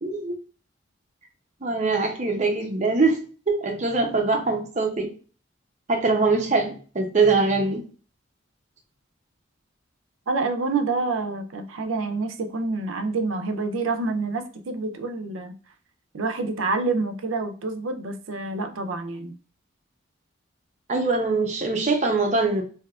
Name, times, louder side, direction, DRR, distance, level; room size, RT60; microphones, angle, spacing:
voice 1, 0.0-0.4 1.6-5.1 5.9-7.8 20.9-22.6, right 3 dB, 35° right, 3 dB, 0.6 m, -23 dB
voice 2, 10.3-15.5 16.1-19.3, right 3 dB, 90° right, 7 dB, 0.5 m, -27 dB
3.5 x 2.7 x 2.3 m, 0.39 s
head